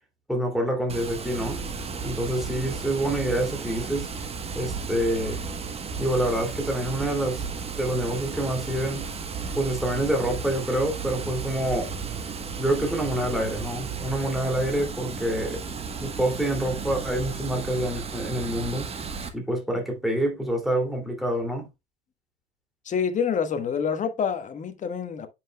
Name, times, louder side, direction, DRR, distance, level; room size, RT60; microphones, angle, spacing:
voice 1, 0.3-1.6 2.0-4.1 4.5-5.4 6.0-7.4 7.7-9.1 9.5-11.9 12.6-15.6 16.0-18.9 19.3-21.7, right 1 dB, ahead, 2.5 m, -27 dB
Water, 0.9-19.3, right 5 dB, 20° right, 1.1 m, -34 dB
voice 2, 22.8-25.3, left 7 dB, 25° left, 1.2 m, -27 dB
9.7 x 5.9 x 2.2 m
hypercardioid pair, 90°, 32 cm